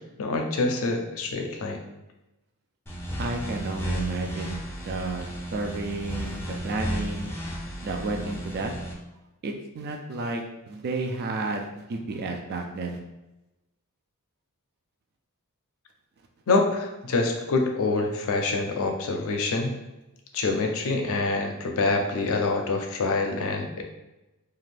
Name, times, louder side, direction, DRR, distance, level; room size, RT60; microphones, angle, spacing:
voice 1, 0.2-1.8 16.5-19.8 20.3-23.8, left 3 dB, 65° left, 3 dB, 0.5 m, -26 dB
sound 1, 2.9-8.9, equal, 10° left, 0.5 m, -33 dB
voice 2, 3.2-7.3 7.8-8.7 9.4-13.0, right 3 dB, 45° right, 3 dB, 0.3 m, -32 dB
2.5 x 2.4 x 3.2 m, 1.0 s
head